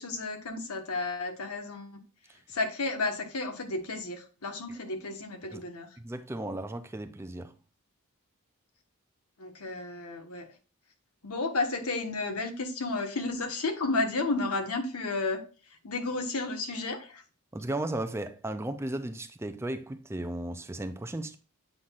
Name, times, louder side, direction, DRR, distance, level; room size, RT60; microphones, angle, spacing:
voice 1, 0.0-2.0 2.5-5.9 9.4-10.5 11.2-15.4 15.7-17.2, left 3 dB, 90° left, 1.3 m, -32 dB
voice 2, 6.0-7.5 17.5-21.4, right 1 dB, 10° right, 0.4 m, -35 dB
7.7 x 5.7 x 2.4 m
head